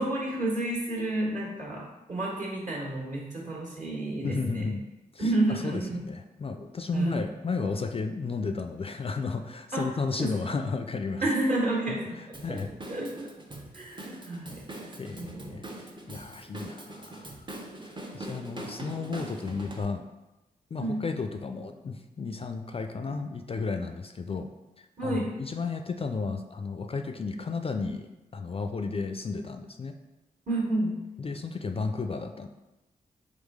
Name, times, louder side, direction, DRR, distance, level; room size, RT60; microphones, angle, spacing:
voice 1, 0.0-4.7 5.2-6.0 6.9-7.2 9.7-9.8 10.2-10.4 11.2-12.6 12.9-13.3 13.7-14.6 15.1-15.6 20.8-21.0 25.0-25.3 30.5-31.0, right 2 dB, 50° right, -3 dB, 1.5 m, -30 dB
voice 2, 4.2-4.9 5.1-11.3 11.9-12.0 12.4-12.7 14.3-14.4 15.0-17.4 17.8-20.0 20.7-24.5 24.8-30.0 31.2-32.5, left 4 dB, 35° left, 7 dB, 0.3 m, -33 dB
Drum kit / Drum, 12.3-19.8, right 1 dB, 30° right, 0.7 m, -42 dB
3.6 x 3.3 x 3.6 m, 1.0 s
supercardioid pair, 40°, 17 cm